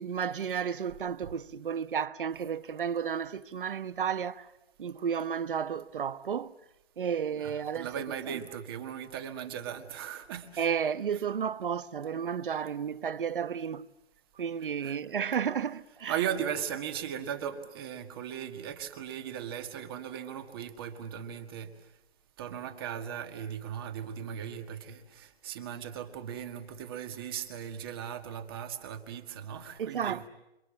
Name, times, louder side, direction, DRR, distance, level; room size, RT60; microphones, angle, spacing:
voice 1, 0.0-4.5 4.8-6.5 7.0-7.9 8.3-8.4 10.6-13.9 14.4-16.1 29.8-30.3, right 7 dB, 50° right, 1.1 m, -32 dB
voice 2, 7.3-10.7 11.1-11.2 14.8-15.0 16.1-21.7 22.4-30.3, right 9 dB, 20° right, 1.8 m, -38 dB
28.5 x 27.5 x 7.4 m
hypercardioid pair, 165°, 33 cm